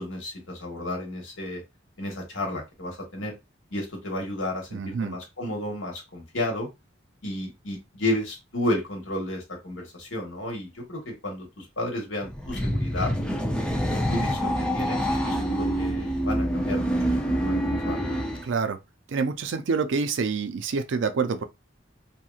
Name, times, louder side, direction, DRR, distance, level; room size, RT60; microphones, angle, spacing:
voice 1, 0.0-1.6 2.0-3.3 3.7-6.7 7.2-13.1 13.9-18.0, left 1 dB, 85° left, 1.3 m, -32 dB
voice 2, 4.7-5.2 18.4-18.8 19.1-21.4, right 5 dB, 70° right, 0.4 m, -27 dB
sound 1, 12.2-18.5, equal, 5° left, 0.4 m, -26 dB
2.9 x 2.7 x 2.3 m
head